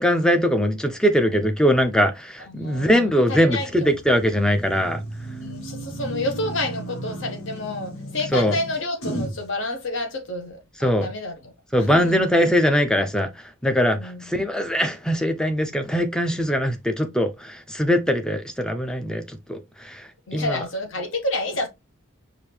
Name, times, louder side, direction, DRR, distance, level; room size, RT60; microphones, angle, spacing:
voice 1, 0.0-5.0 8.3-8.6 10.8-11.1 11.7-20.6, equal, 5° left, 0.4 m, -21 dB
voice 2, 2.5-3.9 5.4-11.5 11.8-12.2 13.9-14.2 20.3-21.7, left 2 dB, 60° left, 1.0 m, -29 dB
sound 1, 3.6-9.5, right 1 dB, 85° left, 1.5 m, -34 dB
5.0 x 2.6 x 3.3 m
head